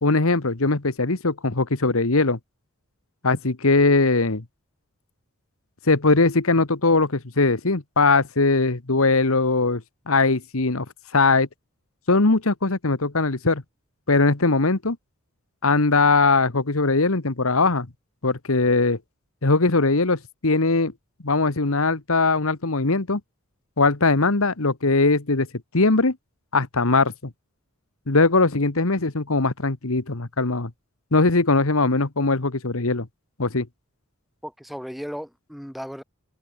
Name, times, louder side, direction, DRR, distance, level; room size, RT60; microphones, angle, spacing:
voice 1, 0.0-2.4 3.2-4.4 5.9-9.8 10.1-10.8 11.1-11.5 12.1-13.6 14.1-15.0 15.6-17.9 18.2-19.0 19.4-20.9 21.2-23.2 23.8-25.5 25.7-26.1 26.5-27.1 28.1-30.7 31.1-33.1 33.4-33.7, left 3 dB, 65° left, 1.5 m, -20 dB
voice 2, 34.4-36.0, equal, ahead, 5.0 m, -35 dB
open air
head